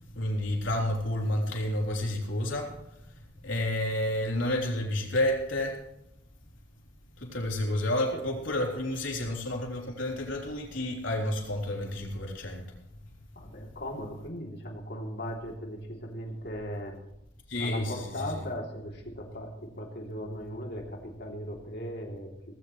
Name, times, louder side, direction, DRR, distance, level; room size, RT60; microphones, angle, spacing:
voice 1, 0.1-5.8 7.2-12.7 17.5-18.4, left 1 dB, 85° left, 0 dB, 3.8 m, -30 dB
voice 2, 13.3-16.9 17.6-22.3, equal, 55° left, 0 dB, 3.2 m, -38 dB
18.5 x 16.0 x 3.3 m, 0.84 s
head